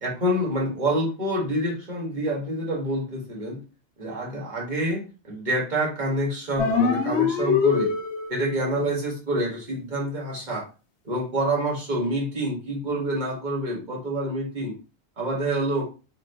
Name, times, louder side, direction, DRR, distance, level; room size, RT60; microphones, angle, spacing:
voice 1, 0.0-3.6 4.0-7.9 8.3-10.7 11.0-14.7 15.2-15.9, right 1 dB, 50° right, -2 dB, 1.2 m, -27 dB
sound 1, 6.6-8.6, left 5 dB, 80° left, 0.9 m, -23 dB
2.6 x 2.5 x 3.3 m, 0.32 s
omnidirectional pair, 1.0 m